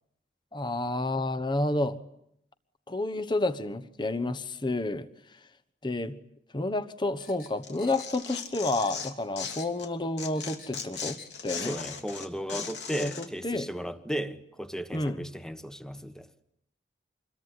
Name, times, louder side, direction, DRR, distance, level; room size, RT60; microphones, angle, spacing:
voice 1, 0.5-2.0 2.9-5.1 5.8-6.2 6.5-11.8 12.5-13.7 14.9-15.3, left 2 dB, 25° left, 1.2 m, -30 dB
sound 1, 7.2-8.5 8.7-9.9 10.1-11.3 11.7-11.8, left 5 dB, 55° left, 4.1 m, -49 dB
Tearing, 7.6-9.9 10.2-13.3, left 6 dB, 80° left, 3.0 m, -38 dB
voice 2, 11.6-16.3, equal, 5° left, 1.2 m, -36 dB
26.5 x 22.0 x 9.8 m
head